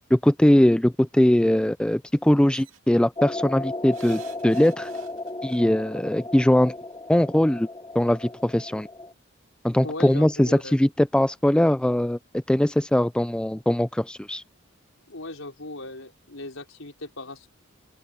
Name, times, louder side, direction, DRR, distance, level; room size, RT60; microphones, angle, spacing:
voice 1, 0.1-4.9 5.4-6.7 7.1-7.7 8.0-8.9 9.6-14.4, left 1 dB, 5° left, 0.3 m, -21 dB
sound 1, 2.5-2.8 3.9-5.6 6.8-6.9 7.2-7.3, right 8 dB, 75° right, 2.7 m, -47 dB
sound 2, 3.2-9.1, left 2 dB, 20° left, 0.9 m, -35 dB
voice 2, 9.8-10.7 15.1-17.5, left 2 dB, 75° left, 5.0 m, -38 dB
open air
head